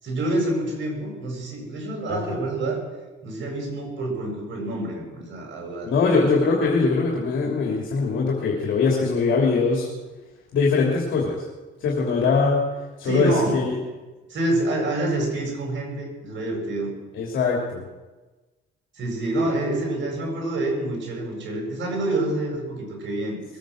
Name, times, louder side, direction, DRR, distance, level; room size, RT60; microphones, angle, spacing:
voice 1, 0.0-2.8 3.2-6.2 13.0-13.6 14.3-16.9 18.9-23.4, right 2 dB, 70° right, 0 dB, 7.3 m, -27 dB
voice 2, 5.9-9.9 10.5-11.4 11.8-12.7 13.0-13.8 17.1-17.8, left 4 dB, 75° left, -3 dB, 3.1 m, -22 dB
21.5 x 9.3 x 6.5 m, 1.2 s
cardioid pair, 90°, 20 cm